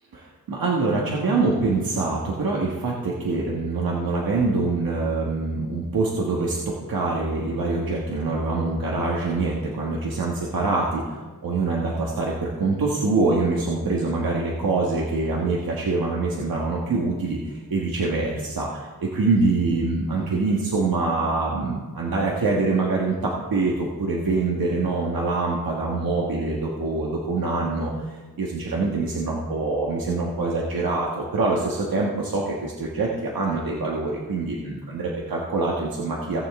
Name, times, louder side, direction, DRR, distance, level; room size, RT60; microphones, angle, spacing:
voice 1, 0.1-36.5, right 3 dB, 75° right, -3 dB, 1.5 m, -25 dB
17.5 x 7.1 x 3.6 m, 1.3 s
wide cardioid pair, 175°, 36 cm